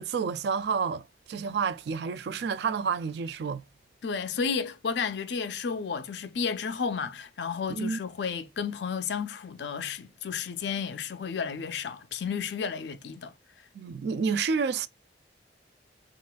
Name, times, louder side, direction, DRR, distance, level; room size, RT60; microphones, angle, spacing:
voice 1, 0.0-3.6 7.7-8.0 13.7-14.9, right 5 dB, 65° right, 0.3 m, -29 dB
voice 2, 4.0-13.3, left 6 dB, 70° left, 0.4 m, -32 dB
3.7 x 2.5 x 2.2 m
head